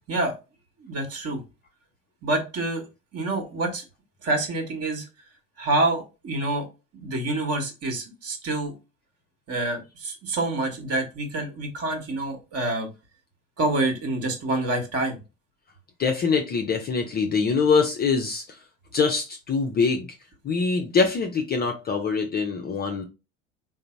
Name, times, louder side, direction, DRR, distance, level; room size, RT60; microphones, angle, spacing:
voice 1, 0.8-1.4 2.2-2.8 3.1-3.8 4.2-5.1 5.6-6.6 6.9-8.7 9.5-12.9 13.6-15.2, right 2 dB, 35° right, 1.2 m, -27 dB
voice 2, 16.0-18.4 18.9-20.1 20.4-23.0, left 5 dB, 25° left, 0.5 m, -24 dB
3.8 x 2.0 x 4.3 m
figure-of-eight pair, 70°, 41 cm